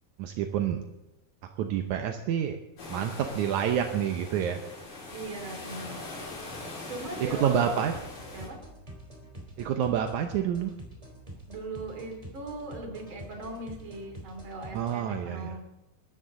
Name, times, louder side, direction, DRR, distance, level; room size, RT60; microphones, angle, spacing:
voice 1, 0.2-0.8 1.6-2.6 2.9-4.6 6.6-6.7 7.4-7.9 9.6-10.7 14.7-15.6, right 9 dB, 75° right, 5 dB, 1.8 m, -28 dB
sound 1, 2.8-8.5, left 2 dB, 60° left, 6.1 m, -42 dB
voice 2, 5.1-6.2 6.9-7.8 8.3-8.6 11.5-15.6, right 2 dB, 35° right, 3 dB, 3.1 m, -39 dB
sound 2, 7.9-15.0, right 1 dB, 10° right, 3.0 m, -46 dB
22.5 x 13.0 x 3.8 m, 0.94 s
omnidirectional pair, 4.4 m